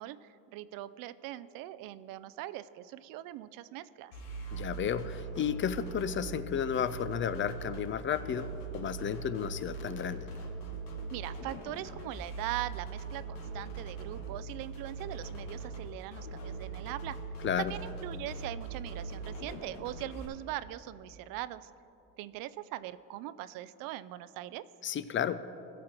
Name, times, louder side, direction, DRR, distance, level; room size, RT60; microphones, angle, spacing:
voice 1, 0.0-4.1 11.1-17.2 17.6-21.7 22.2-24.6, right 14 dB, 75° right, 16 dB, 0.5 m, -41 dB
sound 1, 4.1-20.2, right 4 dB, 85° left, 1.8 m, -41 dB
voice 2, 4.5-8.5 8.7-10.3 17.4-17.7 24.8-25.4, left 8 dB, 35° left, 14 dB, 0.4 m, -32 dB
16.0 x 6.4 x 4.4 m, 2.9 s
supercardioid pair, 95°, 34 cm